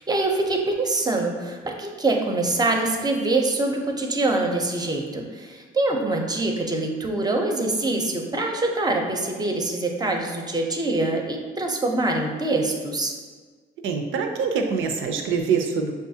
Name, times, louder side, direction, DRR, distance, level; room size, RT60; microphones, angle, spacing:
voice 1, 0.0-13.1, right 2 dB, 20° right, 2 dB, 0.6 m, -24 dB
voice 2, 13.8-15.9, right 5 dB, 80° right, 5 dB, 0.5 m, -24 dB
6.2 x 2.4 x 2.7 m, 1.4 s
cardioid pair, 90°, 20 cm